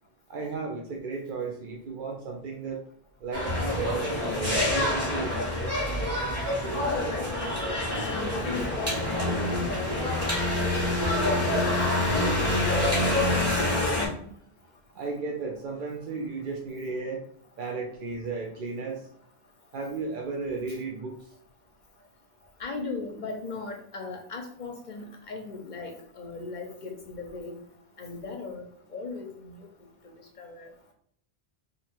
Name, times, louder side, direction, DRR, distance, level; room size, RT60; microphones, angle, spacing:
voice 1, 0.3-2.8 3.2-4.1 4.3-5.8 14.9-17.2 17.6-19.1 19.7-21.1, right 4 dB, 60° right, 0 dB, 0.7 m, -34 dB
sound 1, 3.3-14.1, left 1 dB, 15° right, 1.4 m, -26 dB
voice 2, 6.8-9.9 10.5-10.7 11.5-11.8 12.1-12.6 12.8-13.9 22.6-27.6 28.0-28.7 28.9-29.7 30.4-30.7, left 3 dB, 55° left, 3 dB, 0.6 m, -37 dB
2.8 x 2.6 x 4.3 m, 0.66 s
omnidirectional pair, 1.1 m